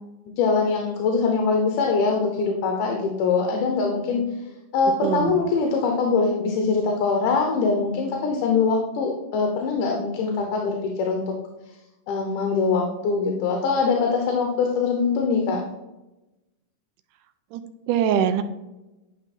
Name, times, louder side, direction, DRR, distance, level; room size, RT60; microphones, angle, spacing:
voice 1, 0.4-4.2 4.7-11.3 12.1-15.6, left 4 dB, 85° left, 1 dB, 2.5 m, -23 dB
voice 2, 5.0-5.4 17.5-17.6 17.9-18.4, right 9 dB, 85° right, 9 dB, 2.2 m, -22 dB
10.5 x 3.6 x 4.2 m, 1.0 s
omnidirectional pair, 3.7 m